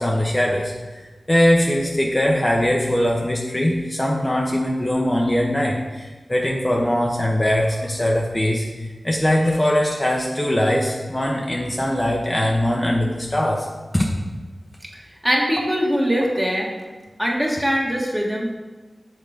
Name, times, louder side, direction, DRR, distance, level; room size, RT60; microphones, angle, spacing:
voice 1, 0.0-13.7 13.9-14.1, left 1 dB, 30° left, -1 dB, 0.8 m, -21 dB
voice 2, 14.9-16.7 17.2-18.5, equal, 10° right, -2 dB, 1.6 m, -22 dB
6.5 x 3.8 x 5.0 m, 1.2 s
cardioid pair, 45°, 0 cm